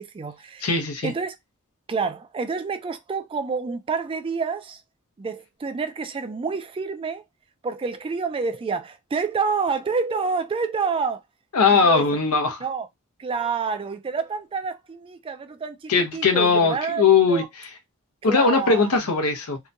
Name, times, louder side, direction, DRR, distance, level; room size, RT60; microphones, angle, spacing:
voice 1, 0.0-0.7 1.0-1.3 1.9-4.8 5.2-7.2 7.6-11.2 11.7-12.1 12.6-12.9 13.2-17.5 18.2-19.0, right 5 dB, 25° right, 0.3 m, -28 dB
voice 2, 0.6-1.1 11.5-12.6 15.9-17.4 18.2-19.6, left 5 dB, 90° left, 0.8 m, -19 dB
2.9 x 2.1 x 2.5 m
head